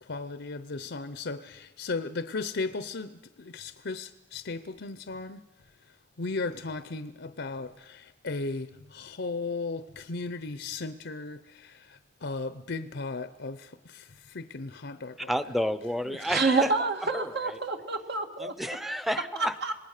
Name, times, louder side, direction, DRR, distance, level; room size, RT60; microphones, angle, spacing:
voice 1, 0.0-5.4 6.2-15.3 16.5-16.6, left 3 dB, 65° left, 11 dB, 0.8 m, -36 dB
voice 2, 15.2-16.7 17.1-17.6 18.4-19.5, equal, ahead, 12 dB, 0.8 m, -31 dB
voice 3, 16.2-18.5 19.6-19.7, right 4 dB, 65° right, 5 dB, 2.2 m, -27 dB
27.0 x 19.5 x 6.6 m, 1.0 s
head